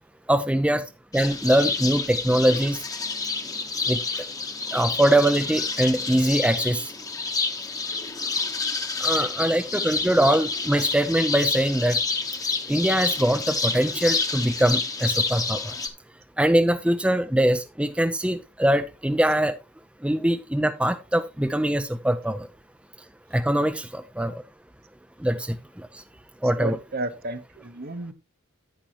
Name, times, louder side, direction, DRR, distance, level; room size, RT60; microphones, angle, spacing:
voice 1, 0.3-0.8 1.1-2.8 3.9-4.2 4.7-6.9 9.0-12.0 12.7-15.7 16.4-19.5 20.0-22.5 23.3-24.4 25.2-26.0 26.4-26.8, right 1 dB, 5° right, 0.6 m, -23 dB
sound 1, 1.1-15.9, left 4 dB, 15° left, 1.1 m, -28 dB
voice 2, 26.6-28.1, right 2 dB, 45° right, 1.1 m, -32 dB
10.5 x 9.1 x 3.0 m
head